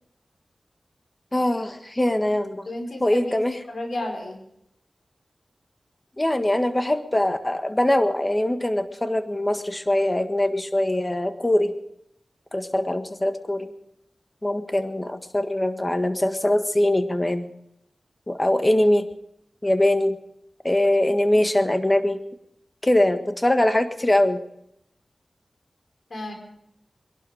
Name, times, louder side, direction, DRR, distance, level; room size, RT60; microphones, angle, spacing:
voice 1, 1.3-2.7 3.0-3.6 6.2-11.7 12.5-13.7 14.4-17.5 18.3-19.1 19.6-20.2 20.6-22.2 22.8-24.4, left 1 dB, 25° left, 8 dB, 1.6 m, -22 dB
voice 2, 2.7-3.3 3.7-4.4 26.1-26.3, left 1 dB, 70° left, 2 dB, 4.6 m, -32 dB
21.5 x 12.0 x 4.9 m, 0.77 s
cardioid pair, 50°, 0 cm